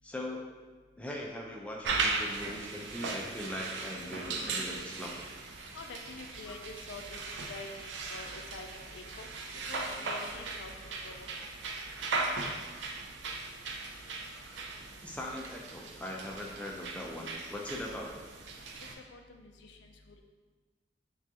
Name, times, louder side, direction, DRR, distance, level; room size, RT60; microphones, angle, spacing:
voice 1, 0.0-0.4 1.0-5.2 6.5-6.6 15.0-18.2, left 1 dB, 5° left, -2 dB, 0.4 m, -40 dB
sound 1, 1.8-18.9, right 3 dB, 85° right, 0.4 m, -38 dB
voice 2, 5.7-9.3 9.6-11.3 19.0-20.2, left 3 dB, 85° left, 4 dB, 0.4 m, -47 dB
5.9 x 2.4 x 2.8 m, 1.3 s
head